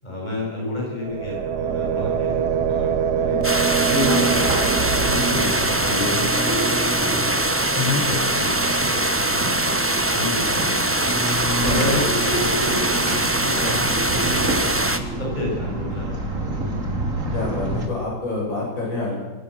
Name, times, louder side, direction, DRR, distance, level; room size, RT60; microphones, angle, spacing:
voice 1, 0.0-3.4 3.9-6.7 7.0-7.5 7.8-9.6 9.9-11.2 11.7-13.8 14.1-14.7 15.3-16.1 16.3-16.8 17.2-17.4, left 2 dB, 20° left, -4 dB, 8.0 m, -31 dB
sound 1, 1.0-10.9, right 8 dB, 60° right, 1.4 m, -27 dB
sound 2, 1.7-17.8, right 1 dB, 40° right, 3.2 m, -28 dB
sound 3, 3.4-15.0, right 1 dB, 10° right, 0.8 m, -22 dB
voice 2, 17.3-19.2, left 3 dB, 65° left, -5 dB, 9.0 m, -27 dB
21.5 x 18.0 x 6.7 m, 1.3 s
omnidirectional pair, 2.2 m